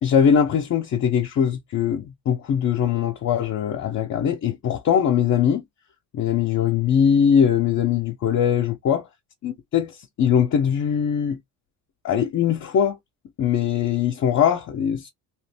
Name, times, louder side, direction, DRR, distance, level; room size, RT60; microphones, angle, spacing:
voice 1, 0.0-5.6 6.1-9.1 9.4-11.4 12.0-13.0 13.4-15.1, left 8 dB, 45° left, 0.7 m, -21 dB
2.9 x 2.5 x 3.4 m
cardioid pair, 115°, 39 cm